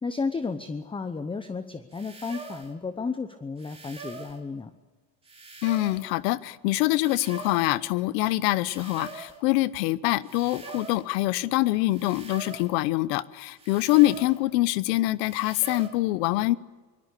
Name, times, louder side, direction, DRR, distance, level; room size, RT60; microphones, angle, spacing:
voice 1, 0.0-4.7, left 4 dB, 10° left, 10 dB, 0.8 m, -33 dB
sound 1, 1.9-2.7 3.6-4.4 5.2-6.1 6.9-7.7 8.6-9.4 10.2-11.1 11.9-12.7 13.6-14.4 15.2-15.9, right 4 dB, 10° right, 2.8 m, -43 dB
voice 2, 5.6-16.6, left 18 dB, 85° left, 18 dB, 1.1 m, -25 dB
24.5 x 22.0 x 8.3 m, 1.4 s
cardioid pair, 135°, 49 cm